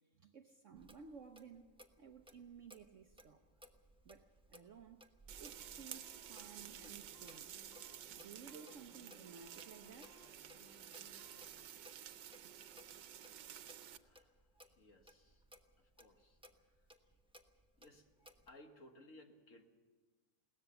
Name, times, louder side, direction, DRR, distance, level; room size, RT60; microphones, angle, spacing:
voice 1, 0.2-1.7 2.0-3.5 4.0-5.0 5.4-7.5 8.1-10.2 12.4-12.5, right 6 dB, 55° right, 1.0 m, -56 dB
Clock, 0.7-18.5, equal, 5° right, 0.8 m, -63 dB
sound 1, 5.3-14.0, right 10 dB, 85° right, 1.5 m, -52 dB
sound 2, 5.6-11.7, left 9 dB, 70° left, 1.4 m, -68 dB
voice 2, 14.8-15.4 16.0-16.4 17.8-18.0 18.5-19.6, left 1 dB, 45° left, 1.9 m, -60 dB
21.5 x 18.0 x 6.9 m
omnidirectional pair, 1.9 m